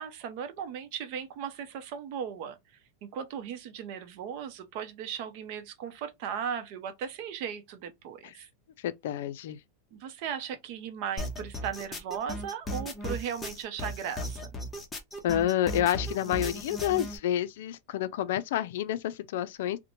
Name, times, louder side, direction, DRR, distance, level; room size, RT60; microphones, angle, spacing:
voice 1, 0.0-2.6 3.0-8.5 9.9-14.5, right 8 dB, 55° right, 0.6 m, -37 dB
voice 2, 8.8-9.6 15.2-19.8, left 11 dB, 70° left, 0.4 m, -29 dB
sound 1, 11.2-17.2, equal, 15° left, 0.7 m, -36 dB
2.8 x 2.1 x 2.6 m
supercardioid pair, 145°, 0 cm